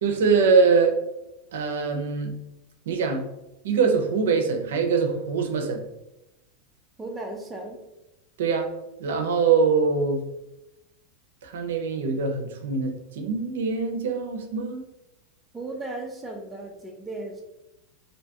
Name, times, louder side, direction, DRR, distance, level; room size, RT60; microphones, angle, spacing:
voice 1, 0.0-1.0 1.5-2.3 2.9-3.2 3.6-5.8 8.4-8.7 9.0-10.2 11.4-14.8, right 5 dB, 85° right, 4 dB, 0.5 m, -23 dB
voice 2, 7.0-7.8 15.5-17.4, right 2 dB, 10° right, 1 dB, 0.5 m, -36 dB
2.6 x 2.2 x 2.7 m, 0.91 s
supercardioid pair, 135°, 0 cm